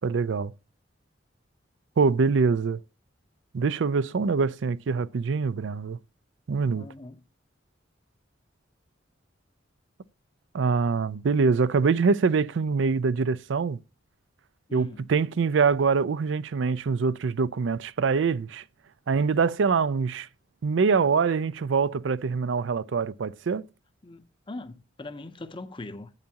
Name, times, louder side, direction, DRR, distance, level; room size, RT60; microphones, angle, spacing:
voice 1, 0.0-0.5 2.0-2.8 3.5-6.0 6.5-6.9 10.5-13.8 14.7-18.6 19.1-20.3 20.6-23.6, right 5 dB, 75° right, 0.4 m, -24 dB
voice 2, 6.8-7.2 14.7-15.1 24.0-26.1, left 2 dB, 25° left, 0.6 m, -41 dB
10.5 x 8.7 x 2.9 m
head